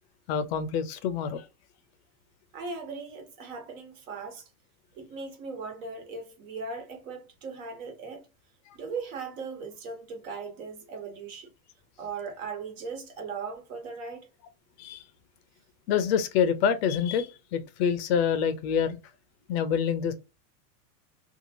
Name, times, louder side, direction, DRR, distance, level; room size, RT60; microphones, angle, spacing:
voice 1, 0.3-1.5 8.7-8.8 14.8-15.0 15.9-19.0 19.5-20.1, left 7 dB, 45° left, 0.5 m, -26 dB
voice 2, 2.5-4.5 4.9-8.2 8.7-11.5 12.0-14.3, right 4 dB, 65° right, 1.4 m, -38 dB
2.7 x 2.3 x 2.8 m
supercardioid pair, 150°, 45 cm